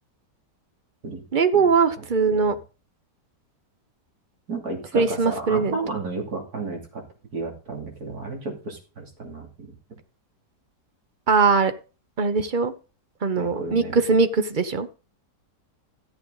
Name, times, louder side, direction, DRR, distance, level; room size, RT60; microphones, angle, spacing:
voice 1, 1.3-2.5 4.9-5.8 11.3-11.7 12.2-12.7 13.2-14.9, right 4 dB, 40° right, 9 dB, 0.7 m, -21 dB
voice 2, 2.0-2.5 4.5-7.0 7.3-9.5 13.4-14.0, right 3 dB, 60° right, 1 dB, 3.3 m, -32 dB
14.0 x 8.0 x 4.0 m, 0.34 s
omnidirectional pair, 1.8 m